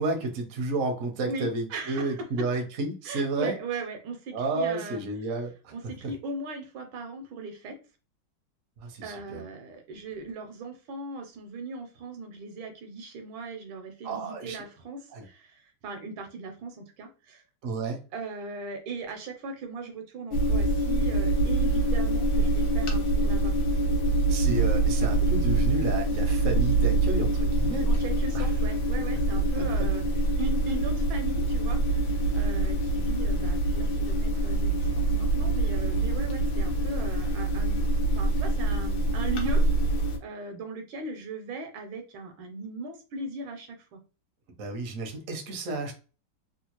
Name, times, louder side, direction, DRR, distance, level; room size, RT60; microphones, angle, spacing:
voice 1, 0.0-3.6 4.3-5.7 8.8-9.4 14.0-14.6 15.1-15.2 17.6-18.0 24.3-27.9 28.3-28.5 44.6-45.9, right 2 dB, 60° right, 3 dB, 0.9 m, -31 dB
voice 2, 1.2-2.2 3.0-5.0 5.7-7.8 9.0-17.4 18.1-23.5 27.9-30.0 30.4-37.8 38.1-39.6 40.2-44.0, right 3 dB, 80° right, 5 dB, 1.5 m, -38 dB
sound 1, 20.3-40.2, right 2 dB, 70° left, 1.2 m, -25 dB
3.6 x 2.3 x 2.9 m, 0.34 s
omnidirectional pair, 2.2 m